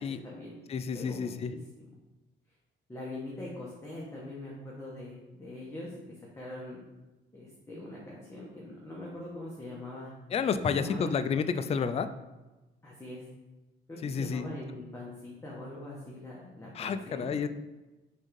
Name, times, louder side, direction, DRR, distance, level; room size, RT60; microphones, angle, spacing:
voice 1, 0.0-0.6 0.9-1.9 2.9-5.9 6.4-6.8 7.3-10.1 10.7-11.2 11.6-11.8 12.8-13.2 13.9-17.3, left 1 dB, 15° left, -5 dB, 1.4 m, -42 dB
voice 2, 0.7-1.5 10.3-12.1 14.0-14.5 16.7-17.5, left 6 dB, 30° left, 10 dB, 0.4 m, -30 dB
5.4 x 3.6 x 5.3 m, 1.1 s
cardioid pair, 90°, 20 cm